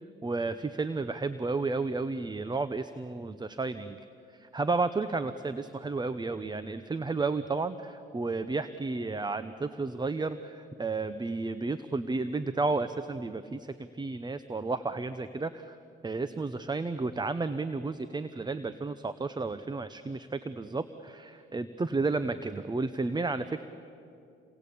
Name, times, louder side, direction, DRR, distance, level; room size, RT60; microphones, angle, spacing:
voice 1, 0.2-4.0 4.3-15.8 16.0-23.7, right 3 dB, 20° right, 12 dB, 0.9 m, -32 dB
28.5 x 21.5 x 8.6 m, 2.6 s
cardioid pair, 90°, 20 cm